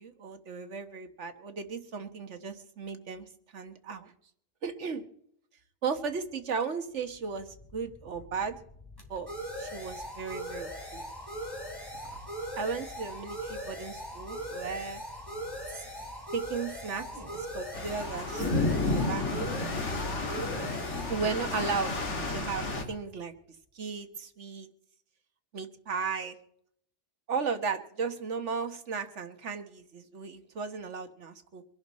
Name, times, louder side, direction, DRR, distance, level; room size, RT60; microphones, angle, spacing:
voice 1, 0.0-3.3 3.5-4.1 4.6-5.0 5.8-8.6 9.1-9.3 9.6-11.0 12.6-15.0 15.7-15.8 16.3-17.0 17.3-18.3 18.7-19.3 21.1-21.9 22.3-23.3 23.7-24.7 25.5-26.3 27.3-31.6, right 5 dB, 85° right, 8 dB, 1.5 m, -35 dB
sound 1, 7.3-22.8, equal, 20° left, 3.1 m, -40 dB
sound 2, 17.1-17.5 18.2-18.6 19.4-19.7 20.5-20.9 21.6-21.8 22.6-23.0, right 1 dB, 25° right, 3.5 m, -47 dB
sound 3, 17.7-22.8, left 2 dB, 80° left, 2.1 m, -31 dB
24.0 x 11.0 x 4.2 m, 0.68 s
omnidirectional pair, 1.2 m